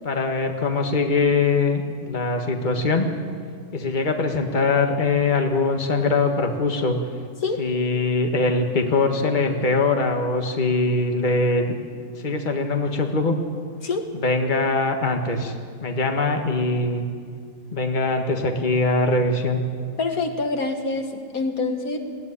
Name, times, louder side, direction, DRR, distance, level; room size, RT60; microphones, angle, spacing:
voice 1, 0.0-3.1 3.7-7.0 7.6-11.7 12.2-13.4 14.1-15.5 15.8-17.0 17.7-19.6, left 3 dB, 35° left, 4 dB, 1.7 m, -22 dB
voice 2, 20.0-22.0, left 3 dB, 80° left, 5 dB, 2.1 m, -26 dB
21.0 x 16.0 x 9.8 m, 2.1 s
omnidirectional pair, 1.5 m